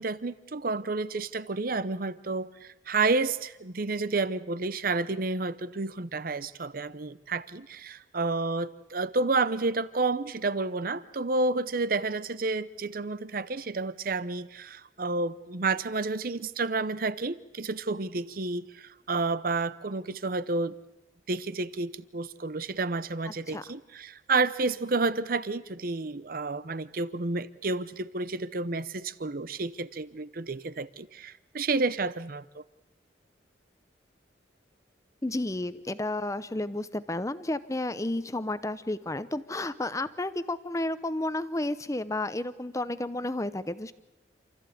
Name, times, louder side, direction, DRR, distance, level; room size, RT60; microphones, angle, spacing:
voice 1, 0.0-20.7 21.3-32.6, right 3 dB, 50° right, 16 dB, 0.8 m, -30 dB
voice 2, 23.3-23.6 35.2-43.9, left 1 dB, 15° left, 14 dB, 0.8 m, -32 dB
28.0 x 14.5 x 8.5 m, 0.97 s
head